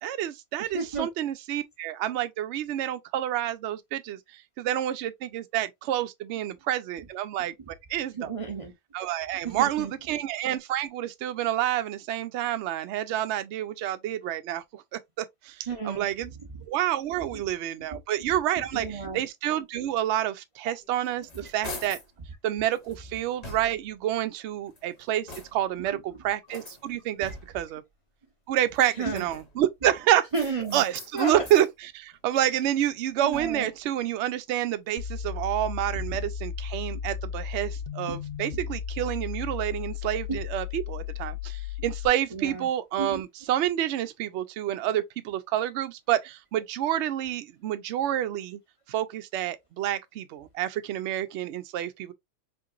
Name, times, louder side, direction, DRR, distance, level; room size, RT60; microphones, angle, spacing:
voice 1, 0.0-4.2 4.6-7.5 7.9-8.3 8.9-14.6 15.2-15.3 15.8-16.3 16.7-21.3 21.5-22.0 22.4-25.3 25.5-27.8 28.5-30.3 30.7-41.4 41.8-48.6 48.9-52.1, right 12 dB, 65° right, 0.7 m, -28 dB
voice 2, 0.6-1.1 8.2-8.7 9.4-9.9 15.7-16.0 17.3-17.4 18.7-19.2 29.0-29.2 30.3-30.8 31.1-31.3 33.2-33.7 38.1-38.2 38.5-38.6 40.3-40.4 42.3-42.7 43.0-43.2, right 4 dB, 35° right, 0.5 m, -32 dB
sound 1, 20.8-22.2 22.7-24.0 24.6-25.8 26.5-27.7 28.6-29.7 30.3-31.7 32.1-33.8, left 2 dB, 35° left, 0.9 m, -45 dB
sound 2, 35.0-42.1, left 8 dB, 70° left, 0.5 m, -35 dB
4.4 x 2.8 x 2.4 m
omnidirectional pair, 1.5 m